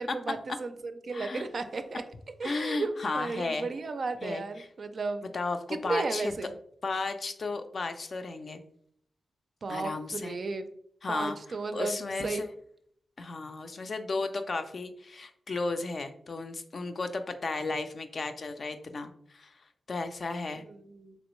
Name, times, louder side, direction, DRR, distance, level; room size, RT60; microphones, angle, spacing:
voice 1, 0.0-2.0 2.4-5.3 5.7-6.5 9.6-10.7 11.1-11.9 12.2-12.4 20.6-21.2, right 3 dB, 55° right, 8 dB, 0.4 m, -34 dB
voice 2, 1.1-1.5 2.4-3.7 4.2-4.4 5.3-6.3 6.8-8.6 9.7-10.4 11.0-11.4 11.7-12.5 13.2-19.5 19.9-20.6, left 3 dB, 50° left, 8 dB, 0.4 m, -34 dB
3.4 x 3.0 x 3.0 m, 0.68 s
wide cardioid pair, 95°, 0 cm